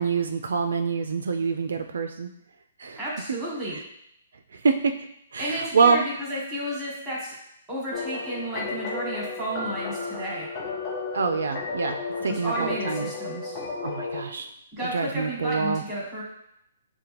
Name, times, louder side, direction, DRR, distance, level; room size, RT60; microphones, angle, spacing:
voice 1, 0.0-2.3 2.8-3.0 4.5-5.0 5.3-6.1 11.1-12.0 12.2-13.1 13.8-14.5 14.8-15.8, right 5 dB, 80° right, 6 dB, 0.4 m, -25 dB
voice 2, 3.0-3.8 5.4-7.3 7.7-10.5 12.3-13.6 14.7-16.2, right 1 dB, 5° right, -5 dB, 1.3 m, -32 dB
sound 1, 7.9-14.2, left 4 dB, 25° left, 0.5 m, -33 dB
6.6 x 2.2 x 2.9 m, 0.77 s
hypercardioid pair, 170°, 0 cm